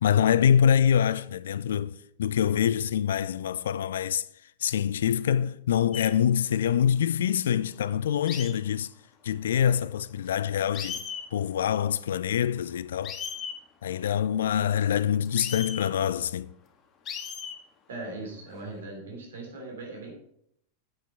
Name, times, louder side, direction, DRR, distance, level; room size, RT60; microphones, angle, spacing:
voice 1, 0.0-4.2 4.6-8.9 9.2-11.0 11.3-13.2 13.8-16.5, left 9 dB, 60° left, 0.4 m, -25 dB
sound 1, 5.9-6.1 8.3-8.5 10.3-10.4 10.7-11.3 13.0-13.6 15.2-15.8 17.0-17.6 18.5-18.8, left 7 dB, 30° left, 1.4 m, -36 dB
voice 2, 17.9-20.1, right 2 dB, 65° right, 3.6 m, -39 dB
9.5 x 8.9 x 4.4 m
figure-of-eight pair, 90°, 0 cm